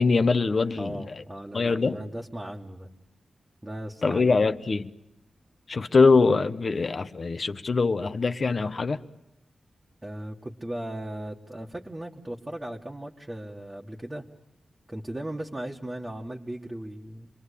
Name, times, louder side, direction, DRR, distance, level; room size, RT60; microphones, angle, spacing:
voice 1, 0.0-1.2 1.5-2.0 4.0-4.9 5.7-9.0, left 4 dB, 40° left, 1.0 m, -23 dB
voice 2, 0.8-2.9 3.6-4.5 10.0-14.3 14.9-17.3, right 1 dB, 15° right, 1.8 m, -37 dB
29.0 x 22.5 x 8.5 m
wide cardioid pair, 145°, 0 cm